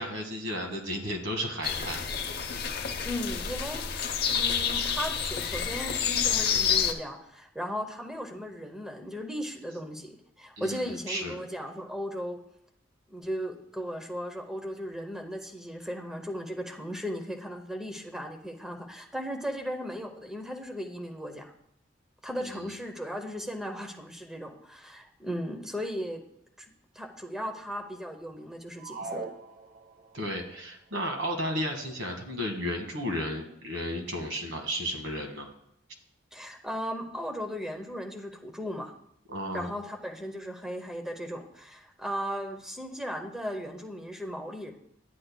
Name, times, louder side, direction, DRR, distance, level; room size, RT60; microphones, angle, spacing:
voice 1, 0.0-2.0 10.6-11.4 22.4-22.6 30.1-35.5 39.3-39.7, equal, 80° right, 3 dB, 1.4 m, -33 dB
sound 1, 1.6-6.9, left 7 dB, 55° left, 0.7 m, -29 dB
voice 2, 3.0-12.4 13.1-21.5 22.2-26.2 26.6-29.2 36.3-38.9 39.5-44.7, equal, 5° right, 3 dB, 0.7 m, -37 dB
sound 2, 28.8-30.3, right 3 dB, 50° right, 0.7 m, -40 dB
11.0 x 8.4 x 2.2 m, 0.76 s
head